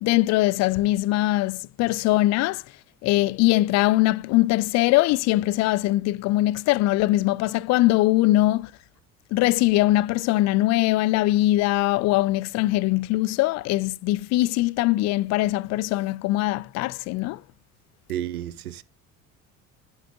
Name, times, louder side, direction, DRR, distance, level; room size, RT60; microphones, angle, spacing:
voice 1, 0.0-2.6 3.0-8.7 9.3-17.4, left 17 dB, 40° left, 0.4 m, -21 dB
voice 2, 18.1-18.8, right 11 dB, 80° right, 0.6 m, -31 dB
11.0 x 7.6 x 2.4 m
figure-of-eight pair, 60°, 43 cm